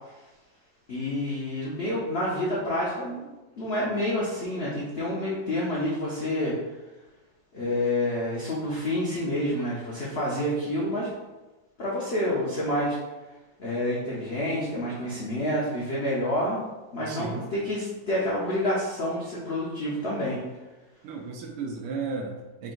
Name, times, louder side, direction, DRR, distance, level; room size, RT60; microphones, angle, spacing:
voice 1, 0.9-3.2 3.6-6.6 7.5-11.1 11.8-13.0 13.6-16.6 16.9-20.4, left 1 dB, 75° left, -6 dB, 0.5 m, -28 dB
voice 2, 17.0-17.5 21.0-22.7, right 4 dB, 75° right, 1 dB, 1.1 m, -34 dB
3.7 x 3.7 x 2.4 m, 1.1 s
omnidirectional pair, 2.1 m